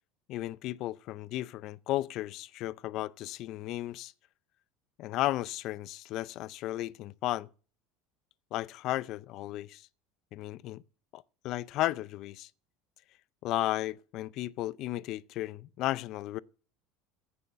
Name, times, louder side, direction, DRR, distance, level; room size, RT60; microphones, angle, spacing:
voice 1, 0.3-4.1 5.0-7.5 8.5-9.8 10.3-10.8 11.1-12.5 13.4-16.4, left 15 dB, 50° left, 0.5 m, -34 dB
15.0 x 7.0 x 5.6 m
cardioid pair, 140°, 0 cm